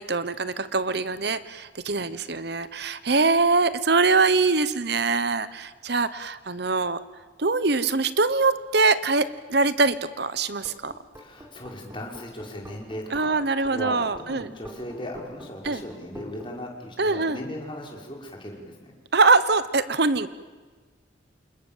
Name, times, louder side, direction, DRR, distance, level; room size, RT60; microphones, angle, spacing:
voice 1, 0.0-7.0 7.4-10.9 13.1-14.5 15.6-15.8 17.0-17.4 19.1-20.3, right 3 dB, 60° right, 14 dB, 1.0 m, -23 dB
sound 1, 10.6-16.5, equal, 15° right, 4.0 m, -45 dB
voice 2, 11.1-13.4 13.7-18.9, left 1 dB, 25° left, 0 dB, 5.5 m, -38 dB
29.0 x 28.0 x 7.4 m, 1.4 s
head